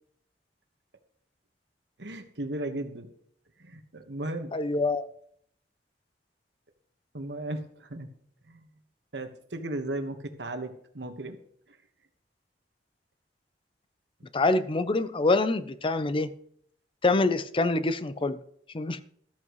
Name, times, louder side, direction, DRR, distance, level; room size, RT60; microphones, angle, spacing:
voice 1, 2.0-3.1 3.6-4.5 7.1-8.1 8.5-8.7 9.1-11.4 11.7-11.8, right 1 dB, 75° right, 1.4 m, -36 dB
voice 2, 4.5-5.1 14.3-16.3 17.0-18.4 18.7-19.0, left 2 dB, 30° left, 0.6 m, -25 dB
13.5 x 13.5 x 3.1 m
head